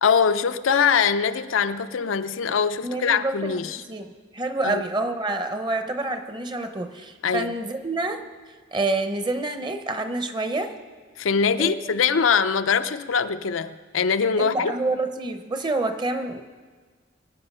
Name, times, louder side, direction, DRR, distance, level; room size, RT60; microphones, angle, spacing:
voice 1, 0.0-3.8 4.6-4.8 7.2-7.5 11.2-14.7, left 6 dB, 90° left, 10 dB, 0.6 m, -22 dB
voice 2, 2.8-8.2 8.7-10.7 11.6-11.8 14.4-16.4, right 2 dB, 25° right, 8 dB, 0.8 m, -28 dB
22.5 x 8.9 x 5.5 m, 1.5 s
head